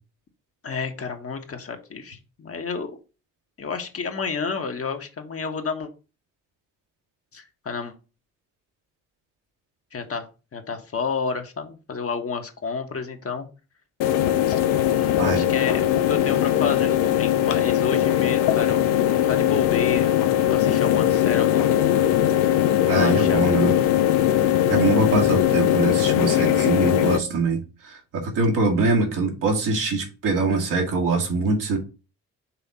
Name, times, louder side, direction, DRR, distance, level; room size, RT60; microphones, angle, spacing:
voice 1, 0.6-3.0 3.6-5.9 7.3-7.9 9.9-13.5 14.4-14.6 14.9-18.8 19.2-20.1 20.5-23.5, left 5 dB, 45° left, 1.5 m, -31 dB
modem fan noise, 14.0-27.2, left 11 dB, 90° left, 0.6 m, -20 dB
voice 2, 22.9-23.8 24.7-31.8, right 3 dB, 75° right, 2.1 m, -23 dB
5.7 x 3.5 x 5.6 m
supercardioid pair, 55°, 32 cm